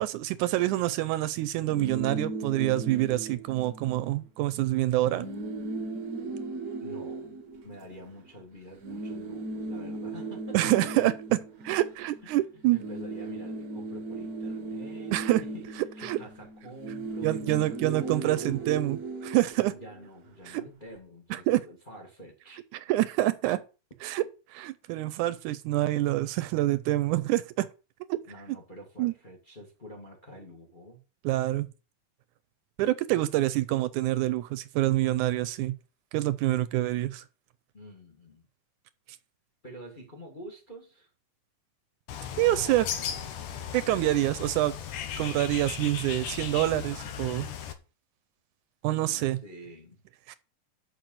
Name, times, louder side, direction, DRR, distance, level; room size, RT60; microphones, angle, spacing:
voice 1, 0.0-5.3 10.5-11.4 11.6-12.8 15.1-15.4 16.0-16.2 17.2-19.7 20.5-20.6 21.3-21.6 22.9-23.6 24.0-24.2 24.5-27.7 28.1-28.2 29.0-29.1 31.3-31.7 32.8-35.8 36.1-37.2 42.4-42.9 43.7-44.8 45.2-47.5 48.8-49.4 50.3-50.4, right 16 dB, 80° right, 2.0 m, -26 dB
sound 1, 1.6-4.2 4.5-4.6 4.9-8.3 8.8-12.4 12.6-20.2, right 3 dB, 50° right, 1.2 m, -37 dB
voice 2, 6.8-7.4 7.6-10.9 12.5-18.6 19.7-22.6 28.3-31.0 37.7-38.5 39.6-41.1 42.5-43.4 48.9-50.0, equal, 20° left, 1.5 m, -47 dB
Bird, 42.1-47.7, left 8 dB, 80° left, 2.7 m, -36 dB
6.7 x 6.5 x 7.6 m
omnidirectional pair, 3.7 m